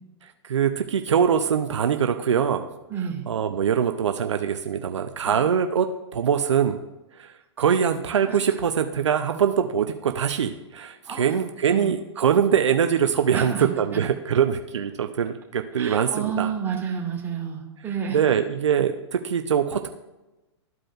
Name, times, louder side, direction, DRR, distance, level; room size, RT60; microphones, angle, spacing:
voice 1, 0.2-2.7 3.3-6.8 7.2-16.5 18.1-19.9, right 8 dB, 75° right, 7 dB, 0.6 m, -23 dB
voice 2, 2.9-3.2 7.8-7.9 8.2-8.4 11.1-11.3 11.7-11.9 13.3-13.7 15.7-18.2, right 7 dB, 15° right, -3 dB, 2.6 m, -30 dB
13.5 x 5.0 x 2.5 m, 1.0 s
hypercardioid pair, 115°, 15 cm